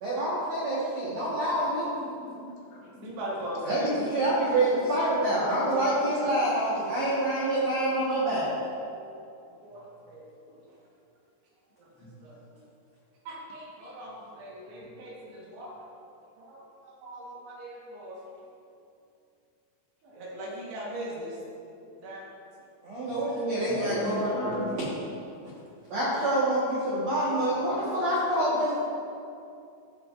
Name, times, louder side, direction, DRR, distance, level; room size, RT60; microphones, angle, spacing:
voice 1, 0.0-2.0 3.6-8.5 22.8-24.6 25.9-28.8, right 1 dB, 85° right, -8 dB, 1.5 m, -27 dB
voice 2, 2.0-3.1 10.5-10.6 12.0-12.1 23.1-23.2 23.6-24.8, left 2 dB, 80° left, -4 dB, 3.8 m, -37 dB
voice 3, 3.0-4.0 4.8-4.9 5.3-6.3 8.9-9.2 9.5-10.3 11.8-12.6 13.3-15.9 16.4-16.6 16.9-18.2 20.0-21.4 22.0-22.2 23.1-23.2 27.5-27.6, right 1 dB, 70° right, -5 dB, 3.2 m, -40 dB
16.0 x 5.8 x 2.5 m, 2.5 s
omnidirectional pair, 5.3 m